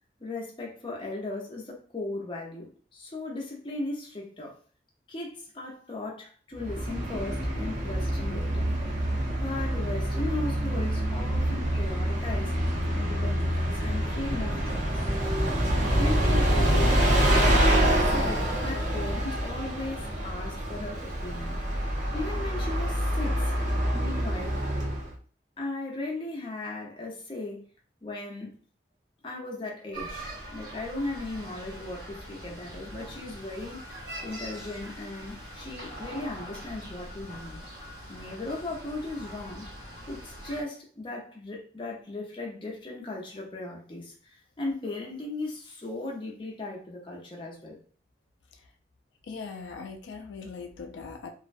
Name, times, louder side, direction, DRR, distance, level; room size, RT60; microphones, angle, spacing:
voice 1, 0.2-4.6 5.1-8.7 9.4-12.6 12.9-15.1 15.6-17.7 18.1-21.6 22.1-23.5 23.9-24.6 25.6-27.6 28.0-28.5 29.2-37.6 38.1-39.7 40.1-47.8, left 2 dB, 30° left, -2 dB, 0.6 m, -37 dB
Bus, 6.5-25.1, equal, 45° right, 0.5 m, -26 dB
sound 1, 29.9-40.6, right 1 dB, 65° right, 1.0 m, -42 dB
voice 2, 49.3-51.3, left 4 dB, 90° left, 4 dB, 0.3 m, -40 dB
2.4 x 2.1 x 2.5 m, 0.42 s
head